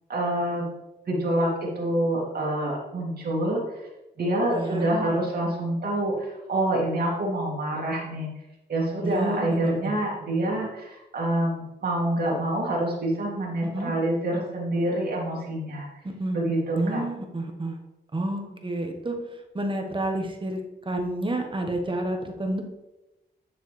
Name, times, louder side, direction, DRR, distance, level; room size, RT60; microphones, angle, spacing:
voice 1, 0.1-0.7 1.1-3.6 4.2-8.3 8.7-15.9 16.3-17.0, right 1 dB, 60° right, -4 dB, 2.2 m, -26 dB
voice 2, 4.5-4.9 9.0-9.9 13.6-13.9 16.0-16.4 16.7-17.8 18.1-19.2 19.5-22.6, right 1 dB, 25° right, 3 dB, 1.3 m, -29 dB
9.5 x 6.3 x 3.3 m, 0.99 s
wide cardioid pair, 110°, 18 cm